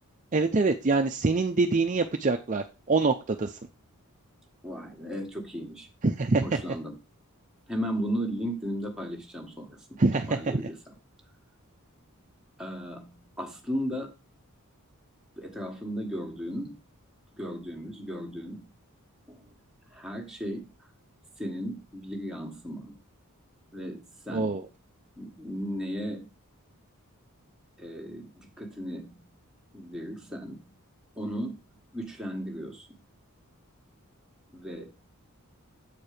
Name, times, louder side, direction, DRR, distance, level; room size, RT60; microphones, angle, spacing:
voice 1, 0.3-3.6 6.0-6.5 10.0-10.7 24.3-24.6, right 3 dB, 35° right, 5 dB, 0.5 m, -25 dB
voice 2, 4.6-5.9 6.4-6.9 7.7-10.0 10.3-10.9 12.6-14.1 15.4-16.8 17.4-18.7 19.3-19.5 19.9-20.7 21.4-22.9 23.7-24.5 25.2-26.3 27.8-29.3 29.7-30.6 31.2-31.6 31.9-33.0 34.5-34.9, equal, 5° right, 0 dB, 1.5 m, -35 dB
7.7 x 4.6 x 4.9 m, 0.29 s
head